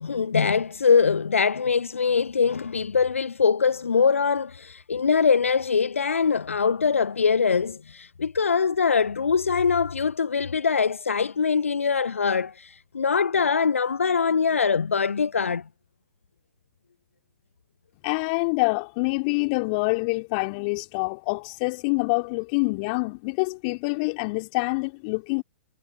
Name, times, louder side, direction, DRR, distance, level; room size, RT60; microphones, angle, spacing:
voice 1, 0.0-15.6, left 5 dB, 75° left, 0.5 m, -23 dB
voice 2, 18.0-25.4, left 29 dB, 40° left, 2.9 m, -26 dB
figure-of-eight pair, 110°, 7 cm